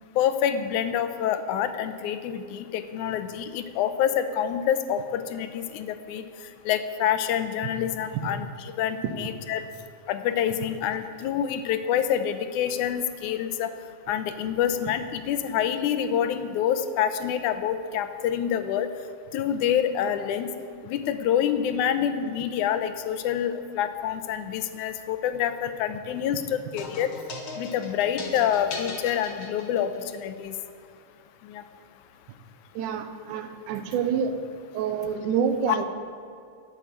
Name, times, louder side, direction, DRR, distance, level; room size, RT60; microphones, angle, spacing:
voice 1, 0.2-6.3 6.7-8.5 8.8-9.6 10.1-13.7 14.1-18.9 19.3-20.5 20.8-27.1 27.6-30.6 31.5-31.6, left 9 dB, 80° left, 10 dB, 2.1 m, -27 dB
sound 1, 26.8-30.2, left 3 dB, 50° left, 2.0 m, -38 dB
voice 2, 32.8-34.3 34.7-35.8, right 7 dB, 85° right, 8 dB, 2.4 m, -27 dB
11.5 x 7.5 x 8.6 m, 2.4 s
omnidirectional pair, 3.5 m